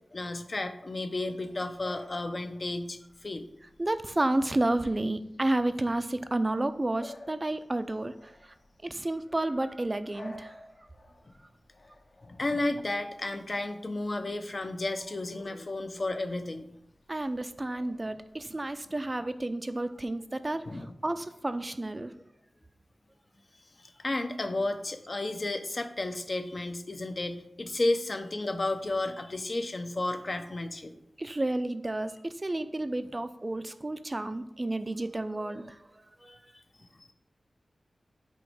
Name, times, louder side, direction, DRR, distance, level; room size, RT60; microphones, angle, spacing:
voice 1, 0.1-3.5 11.3-11.4 12.3-16.7 20.6-20.9 23.8-30.9 36.3-36.4 37.0-37.1, left 2 dB, 40° left, 7 dB, 0.8 m, -32 dB
Bark / Bird vocalization bird call bird song, 1.2-18.7, left 2 dB, 65° left, 1.9 m, -54 dB
voice 2, 3.8-8.5 8.8-10.6 17.1-22.1 31.2-35.9 36.2-36.4, right 2 dB, 25° right, 10 dB, 0.5 m, -31 dB
8.2 x 3.1 x 6.2 m, 0.76 s
wide cardioid pair, 100°, 0 cm